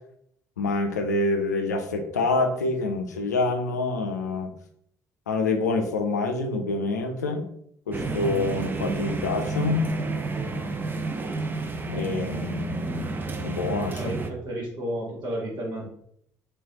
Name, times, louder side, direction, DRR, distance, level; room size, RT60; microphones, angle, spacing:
voice 1, 0.6-4.5 5.3-7.5 7.9-9.9 11.9-13.1 13.4-14.0, left 3 dB, 85° left, 6 dB, 0.4 m, -26 dB
sound 1, 7.9-14.3, right 3 dB, 25° right, 0.5 m, -30 dB
voice 2, 13.9-15.9, right 1 dB, 55° right, -3 dB, 1.5 m, -32 dB
3.3 x 3.1 x 2.9 m, 0.70 s
figure-of-eight pair, 55°, 9 cm